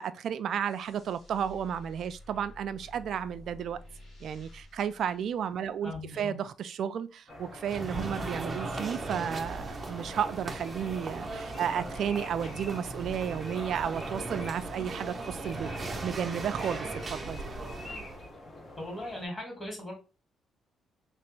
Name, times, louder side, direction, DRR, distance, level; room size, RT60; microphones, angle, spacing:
voice 1, 0.0-3.8 4.2-15.7 16.0-17.4, right 8 dB, 65° right, 0.3 m, -33 dB
sound 1, 0.6-6.0, left 1 dB, 60° left, 1.9 m, -51 dB
voice 2, 5.8-6.4 18.8-19.9, left 1 dB, 25° left, 1.9 m, -38 dB
sound 2, 7.3-19.3, left 1 dB, 40° left, 1.1 m, -47 dB
sound 3, 7.6-18.3, right 2 dB, 30° right, 0.6 m, -38 dB
3.3 x 2.9 x 3.2 m
cardioid pair, 90°, 0 cm